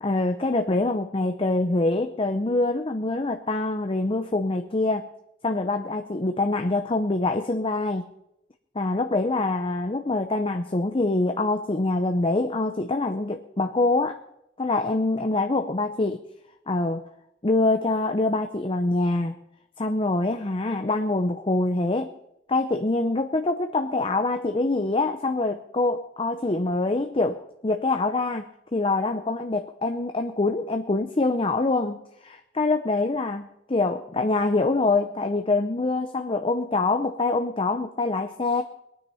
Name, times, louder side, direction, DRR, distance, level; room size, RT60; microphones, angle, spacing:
voice 1, 0.0-5.1 5.4-8.1 8.7-14.2 14.6-16.2 16.7-17.0 17.4-19.4 19.8-22.1 22.5-38.6, left 2 dB, 30° left, 6 dB, 0.7 m, -25 dB
21.5 x 9.4 x 5.7 m, 0.82 s
head